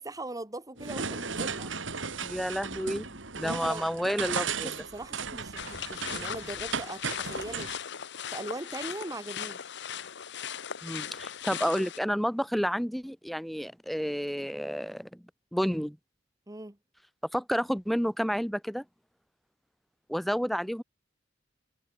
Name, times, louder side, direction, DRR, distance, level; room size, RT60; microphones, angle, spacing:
voice 1, 0.0-1.7 3.4-3.8 4.6-7.7 8.3-9.6 16.5-16.8, right 2 dB, 20° right, 1.4 m, -40 dB
sound 1, 0.8-7.8, right 5 dB, 70° right, 3.1 m, -36 dB
voice 2, 2.2-3.1 3.4-4.7 10.8-15.2 15.5-16.0 17.3-18.8 20.1-20.8, equal, ahead, 0.8 m, -30 dB
sound 2, 5.6-12.0, left 8 dB, 65° left, 1.1 m, -38 dB
head